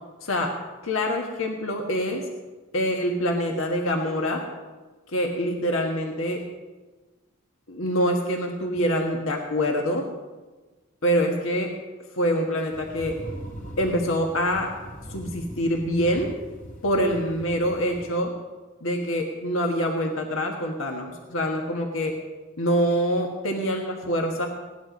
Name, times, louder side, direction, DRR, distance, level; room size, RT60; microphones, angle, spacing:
voice 1, 0.2-2.3 2.7-4.4 5.1-6.4 7.7-10.1 11.0-11.7 12.2-13.2 13.8-14.7 15.1-16.3 16.8-18.3 18.8-22.2 22.6-24.5, equal, 85° left, 2 dB, 1.5 m, -25 dB
sound 1, 12.7-18.1, right 1 dB, 45° left, 2.9 m, -40 dB
17.0 x 11.0 x 5.2 m, 1.3 s
head